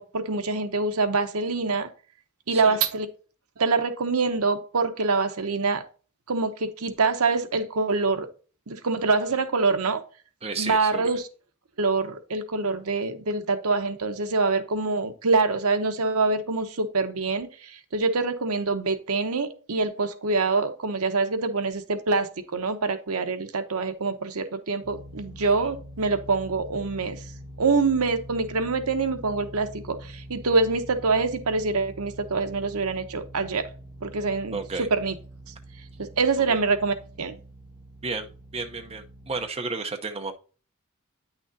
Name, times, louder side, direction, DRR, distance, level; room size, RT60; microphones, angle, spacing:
voice 1, 0.0-1.9 2.5-3.1 3.6-5.8 6.3-8.3 8.7-10.0 10.6-11.3 11.8-27.2 27.6-33.7 34.0-35.1 36.0-37.4, right 4 dB, 75° right, 8 dB, 0.9 m, -25 dB
voice 2, 10.4-11.1 34.5-34.9 36.5-36.6 38.0-38.3 38.5-40.3, right 4 dB, 30° right, 5 dB, 0.8 m, -32 dB
sound 1, 24.8-39.5, equal, 5° right, 3.2 m, -44 dB
9.5 x 6.2 x 2.7 m, 0.37 s
head